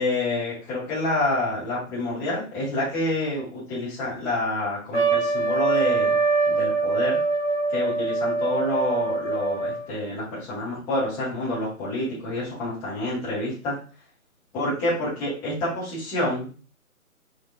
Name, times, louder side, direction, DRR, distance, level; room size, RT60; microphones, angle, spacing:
voice 1, 0.0-6.2 6.4-7.2 7.7-13.8 14.5-16.5, left 1 dB, 5° left, -10 dB, 0.9 m, -28 dB
Trumpet, 4.9-9.9, right 3 dB, 60° left, 1.2 m, -24 dB
6.0 x 3.1 x 2.4 m, 0.36 s
figure-of-eight pair, 140°, 42 cm